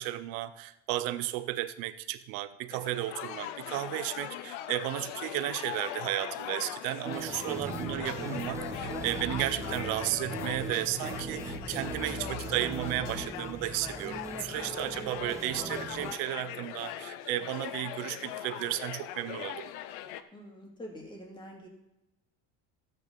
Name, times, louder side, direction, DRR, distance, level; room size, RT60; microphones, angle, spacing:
voice 1, 0.0-19.7, right 15 dB, 70° right, 13 dB, 0.9 m, -34 dB
sound 1, 2.7-20.2, left 12 dB, 85° left, 0.8 m, -40 dB
sound 2, 7.0-16.2, right 4 dB, 10° right, 0.4 m, -41 dB
sound 3, 7.3-13.2, left 2 dB, 45° left, 2.4 m, -43 dB
voice 2, 7.6-8.0 20.3-21.7, equal, 15° left, 0 dB, 2.8 m, -45 dB
13.0 x 8.5 x 4.1 m, 0.95 s
cardioid pair, 140°, 36 cm